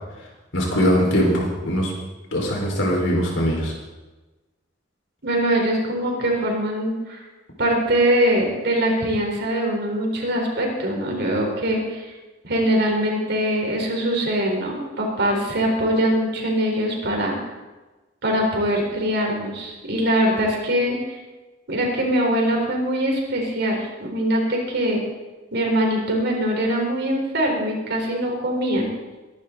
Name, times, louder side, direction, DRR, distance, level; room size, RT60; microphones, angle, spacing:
voice 1, 0.5-1.9 2.3-3.7, equal, 75° left, -1 dB, 4.7 m, -21 dB
voice 2, 5.2-7.2 7.6-12.1 12.4-17.4 18.2-21.2 21.7-25.0 25.5-28.9, right 1 dB, 60° right, 0 dB, 4.3 m, -22 dB
22.0 x 11.5 x 4.0 m, 1.2 s
head